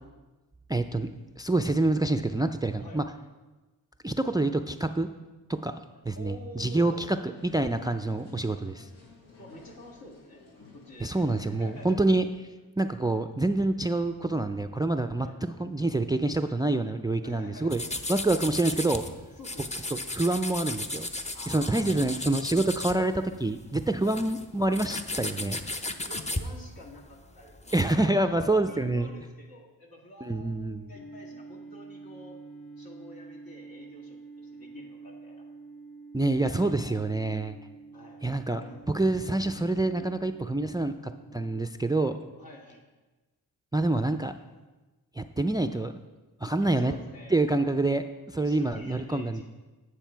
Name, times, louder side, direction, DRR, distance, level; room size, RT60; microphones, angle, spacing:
voice 1, 0.7-1.1 1.4-3.0 4.0-5.1 5.6-5.7 6.1-7.2 7.4-8.9 11.0-12.2 12.8-17.8 18.1-19.0 19.9-21.1 21.5-25.6 27.7-29.1 30.2-30.9 36.1-37.6 38.2-38.6 38.9-42.2 43.7-44.3 45.2-46.0 46.4-46.9 47.3-49.4, right 2 dB, 10° right, 9 dB, 0.4 m, -27 dB
voice 2, 6.2-7.1 9.4-10.4 10.7-12.0 15.2-15.4 17.2-17.8 19.4-19.8 21.3-22.4 24.0-24.2 26.0-32.4 32.8-35.5 36.3-37.0 37.9-38.9 42.4-42.8 46.6-47.4 48.4-49.4, left 1 dB, 70° left, -1 dB, 2.1 m, -48 dB
sound 1, 7.4-12.5, left 3 dB, 90° left, 1.3 m, -54 dB
sound 2, 17.7-19.1 19.4-23.4 23.8-27.9, left 2 dB, 20° left, 0.7 m, -35 dB
sound 3, 30.9-41.5, right 3 dB, 40° left, 3.1 m, -48 dB
9.1 x 6.8 x 4.5 m, 1.2 s
cardioid pair, 65°, 37 cm